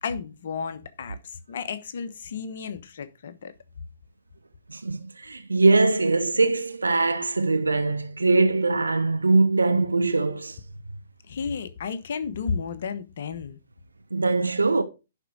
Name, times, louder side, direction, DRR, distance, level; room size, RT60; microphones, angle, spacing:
voice 1, 0.0-3.5 11.3-13.6, left 6 dB, 60° left, 1.1 m, -33 dB
voice 2, 4.7-10.6 14.1-14.8, right 3 dB, 90° right, 0.9 m, -22 dB
11.0 x 4.6 x 4.9 m
figure-of-eight pair, 125°, 0 cm